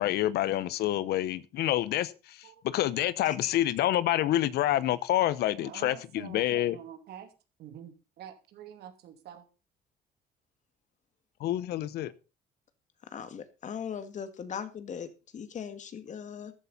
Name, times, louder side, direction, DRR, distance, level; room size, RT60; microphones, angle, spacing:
voice 1, 0.0-2.4 2.6-6.8 11.4-12.1, left 13 dB, 75° left, 17 dB, 1.0 m, -27 dB
voice 2, 3.2-3.6 13.1-16.5, left 7 dB, 45° left, 10 dB, 2.0 m, -39 dB
voice 3, 5.6-7.3 7.6-9.5, right 10 dB, 75° right, 7 dB, 2.8 m, -47 dB
14.0 x 11.5 x 4.2 m, 0.31 s
cardioid pair, 110°, 17 cm